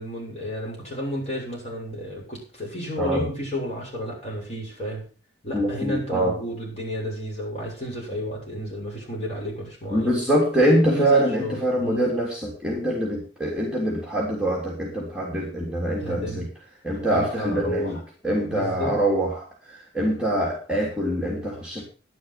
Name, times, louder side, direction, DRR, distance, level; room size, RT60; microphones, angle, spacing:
voice 1, 0.0-5.0 5.4-10.1 10.9-12.1 16.0-16.5 16.9-18.0 18.5-18.9, equal, 35° left, -3 dB, 7.1 m, -32 dB
voice 2, 5.5-6.3 9.9-16.4 16.8-18.0 18.2-19.4 19.9-21.8, right 1 dB, 5° right, -3 dB, 3.2 m, -24 dB
11.5 x 11.0 x 5.9 m, 0.37 s
head